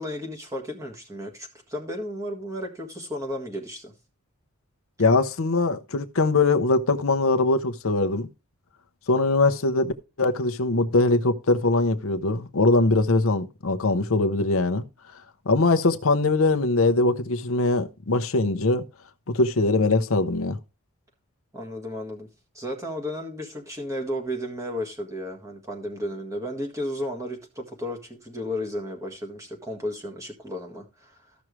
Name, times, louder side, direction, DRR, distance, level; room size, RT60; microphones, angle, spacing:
voice 1, 0.0-3.9 21.5-22.3 22.5-31.2, left 1 dB, 15° right, 1.7 m, -33 dB
voice 2, 5.0-8.3 9.1-9.9 10.2-14.8 15.5-18.8 19.3-20.6, left 2 dB, 70° left, 0.8 m, -22 dB
13.5 x 6.1 x 3.2 m
head